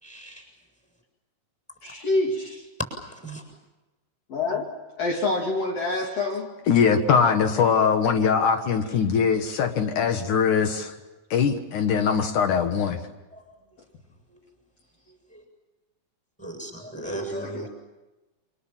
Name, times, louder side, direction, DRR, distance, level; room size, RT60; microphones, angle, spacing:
voice 1, 0.0-0.5 3.1-3.4 13.3-13.4 14.3-14.4 15.1-15.4 16.4-17.7, right 1 dB, ahead, 4 dB, 7.2 m, -37 dB
voice 2, 1.8-2.7 4.3-4.7 5.0-6.5 16.9-17.7, left 2 dB, 55° left, 0 dB, 3.2 m, -27 dB
voice 3, 6.7-10.9 11.3-13.0, left 6 dB, 75° left, 5 dB, 3.0 m, -21 dB
28.5 x 26.0 x 7.4 m, 1.1 s
omnidirectional pair, 3.6 m